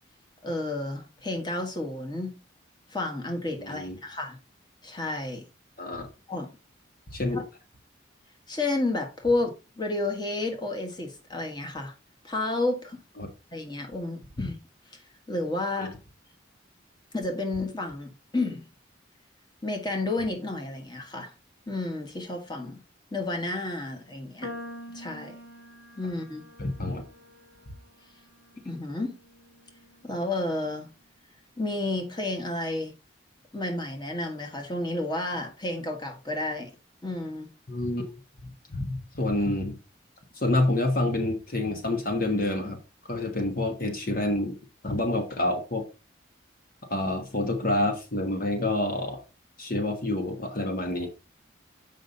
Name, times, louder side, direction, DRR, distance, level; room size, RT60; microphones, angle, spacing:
voice 1, 0.4-2.3 2.9-4.4 4.8-5.4 6.3-6.5 7.3-7.4 8.5-11.9 12.2-13.0 13.5-14.6 14.9-15.0 15.3-15.9 17.1-18.6 19.6-21.3 21.7-22.8 23.1-24.5 24.9-25.4 26.0-26.4 28.6-29.2 30.0-30.9 31.6-32.9 33.5-36.7 37.0-37.5, left 2 dB, 20° left, 1.5 m, -31 dB
voice 2, 3.6-4.0 5.8-6.1 7.1-7.4 13.2-13.3 15.8-15.9 26.6-27.0 37.7-38.1 38.4-39.8 40.3-42.8 43.0-44.5 44.8-45.8 46.9-49.2 49.6-51.1, left 1 dB, 45° left, 1.2 m, -28 dB
sound 1, 24.4-30.8, left 1 dB, 65° left, 1.6 m, -46 dB
7.5 x 5.4 x 3.9 m
head